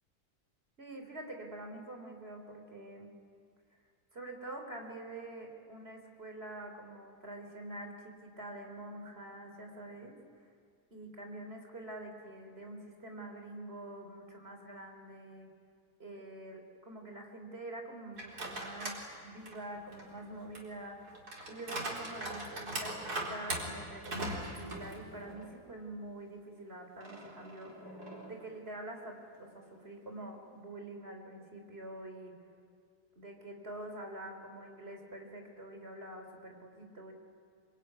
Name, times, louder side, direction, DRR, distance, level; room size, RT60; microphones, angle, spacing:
voice 1, 0.8-3.1 4.1-10.2 10.9-15.5 16.0-19.0 19.2-21.0 21.5-28.0 28.3-32.4 33.2-37.1, right 1 dB, 40° right, 3 dB, 4.0 m, -46 dB
sound 1, 18.1-19.0 19.5-25.5 25.9-26.0 27.0-28.5, right 1 dB, 80° right, 4.8 m, -41 dB
25.5 x 24.5 x 9.6 m, 2.2 s
omnidirectional pair, 1.7 m